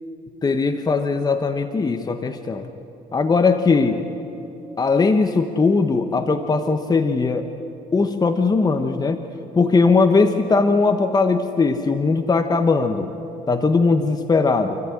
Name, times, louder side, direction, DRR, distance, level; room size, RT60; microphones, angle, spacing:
voice 1, 0.4-2.7 3.1-4.0 4.8-7.5 7.9-9.2 9.5-13.1 13.5-14.8, left 4 dB, 25° left, 7 dB, 1.1 m, -19 dB
28.0 x 14.5 x 9.8 m, 3.0 s
cardioid pair, 110°, 17 cm